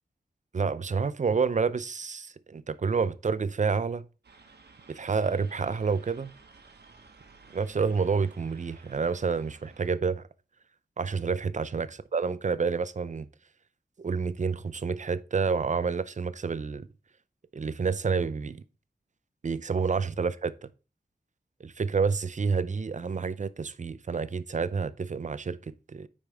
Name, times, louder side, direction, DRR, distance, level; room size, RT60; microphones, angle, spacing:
voice 1, 0.5-4.0 4.9-6.3 7.5-10.2 11.0-13.3 14.0-16.9 17.5-18.6 19.4-20.7 21.6-26.1, right 5 dB, 45° right, 0.6 m, -29 dB
sound 1, 4.2-9.9, right 4 dB, 80° right, 1.4 m, -55 dB
9.1 x 5.2 x 3.5 m
wide cardioid pair, 70°, 17 cm